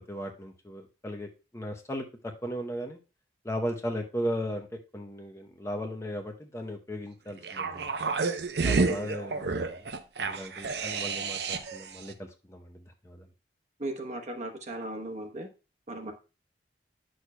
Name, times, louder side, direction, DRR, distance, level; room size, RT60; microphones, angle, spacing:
voice 1, 0.1-1.3 1.5-3.0 3.4-8.0 8.6-9.9 10.2-13.3, equal, 15° left, 3 dB, 0.7 m, -36 dB
sound 1, 7.4-11.8 12.1-12.2, right 4 dB, 70° right, 0.7 m, -30 dB
voice 2, 13.8-15.5 15.9-16.1, right 1 dB, 40° right, 4 dB, 1.0 m, -37 dB
9.7 x 6.3 x 2.2 m, 0.32 s
head